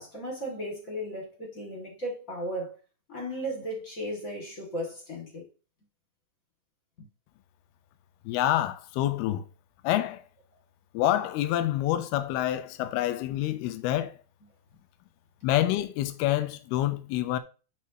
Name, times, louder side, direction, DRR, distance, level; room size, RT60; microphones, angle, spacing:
voice 1, 0.0-2.8 3.1-5.4 7.0-7.1, equal, 25° left, 2.3 m, -35 dB
voice 2, 8.3-9.4 9.8-10.2 10.9-14.1 15.4-17.4, left 13 dB, 80° left, 2.4 m, -27 dB
10.0 x 4.8 x 3.1 m
omnidirectional pair, 5.3 m